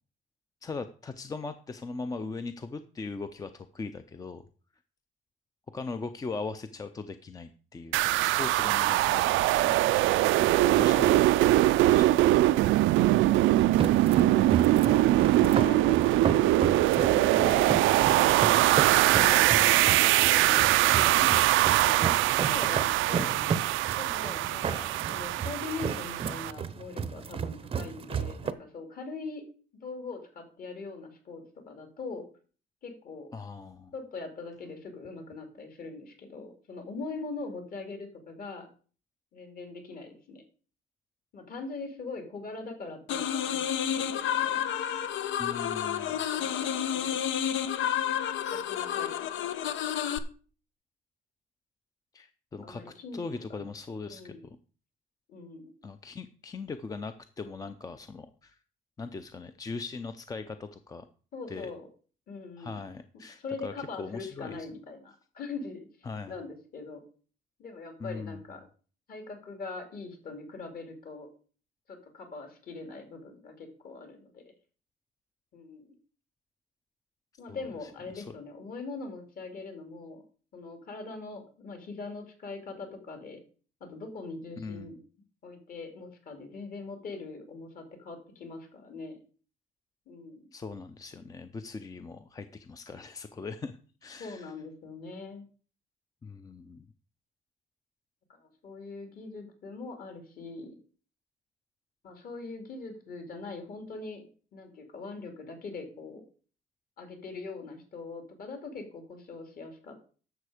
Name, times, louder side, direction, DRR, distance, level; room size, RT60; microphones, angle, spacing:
voice 1, 0.6-4.5 5.7-12.3 23.1-23.7 24.4-24.7 33.3-33.9 45.4-46.2 52.1-54.6 55.8-58.6 59.0-61.1 61.5-61.7 62.6-64.7 66.1-66.4 68.0-68.4 77.5-78.3 84.6-84.9 90.5-94.5 96.2-96.8, left 4 dB, 20° left, 10 dB, 0.5 m, -40 dB
sound 1, 7.9-26.5, right 16 dB, 85° right, 0.4 m, -23 dB
voice 2, 10.6-11.6 14.1-17.8 18.1-18.5 19.2-23.4 23.9-29.4 29.8-32.3 32.8-33.3 33.9-38.7 39.3-40.4 41.3-44.7 46.3-47.2 48.5-49.5 52.6-53.6 54.1-54.4 55.3-55.7 61.3-61.9 62.3-62.8 63.4-65.8 66.3-67.0 67.6-68.6 69.1-71.3 71.9-74.4 75.5-76.0 77.4-80.2 80.5-83.4 83.8-85.0 85.4-89.2 90.1-90.5 94.2-95.5 98.3-100.7 102.0-104.2 104.5-106.2 107.0-110.0, left 3 dB, 50° left, 5 dB, 2.7 m, -42 dB
sound 2, 13.6-28.5, right 6 dB, 30° right, 0.6 m, -34 dB
sound 3, 43.1-50.2, left 9 dB, 75° left, 0.9 m, -30 dB
11.0 x 7.0 x 4.9 m, 0.40 s
cardioid pair, 160°, 20 cm